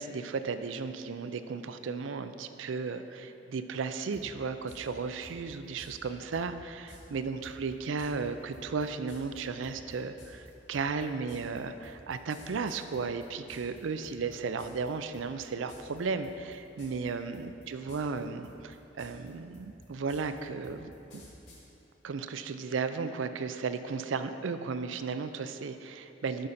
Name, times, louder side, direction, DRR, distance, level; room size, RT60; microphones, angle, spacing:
voice 1, 0.0-21.2 22.0-26.5, right 4 dB, 85° right, 10 dB, 0.4 m, -35 dB
sound 1, 4.1-4.2 4.7-4.8 5.2-5.9 6.3-6.5 6.9-7.0 7.4-13.8 14.0-14.9 15.1-15.4 15.7-16.0 16.2-17.1 17.3-18.2 18.4-21.6, left 1 dB, 70° left, 2.1 m, -52 dB
11.5 x 5.7 x 4.2 m, 2.8 s
head